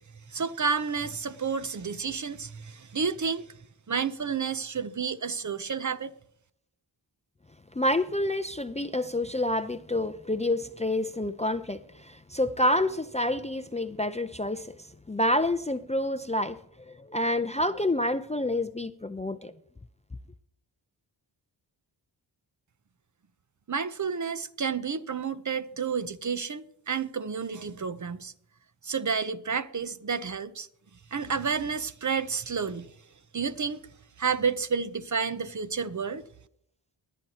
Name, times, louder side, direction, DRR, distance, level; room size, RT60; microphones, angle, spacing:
voice 1, 0.3-3.5 3.9-6.1 23.7-28.3 28.8-30.7 31.1-32.9 33.3-33.9 34.2-36.2, right 5 dB, 40° right, 0.7 m, -30 dB
voice 2, 7.8-14.8 15.1-16.6 16.9-19.5, left 1 dB, 15° left, 0.5 m, -28 dB
21.0 x 9.1 x 2.9 m
cardioid pair, 50°, 48 cm